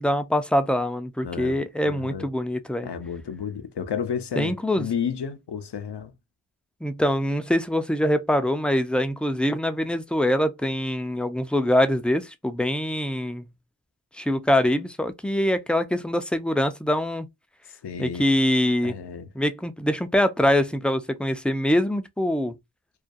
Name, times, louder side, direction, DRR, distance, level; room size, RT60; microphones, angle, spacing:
voice 1, 0.0-2.9 4.4-4.9 6.8-13.4 14.2-17.3 18.0-19.0 19.4-22.6, left 1 dB, 5° left, 0.3 m, -24 dB
voice 2, 1.2-2.3 2.8-6.1 17.7-18.2 18.8-19.3, left 7 dB, 75° left, 0.6 m, -32 dB
2.4 x 2.2 x 2.5 m
wide cardioid pair, 45°, 41 cm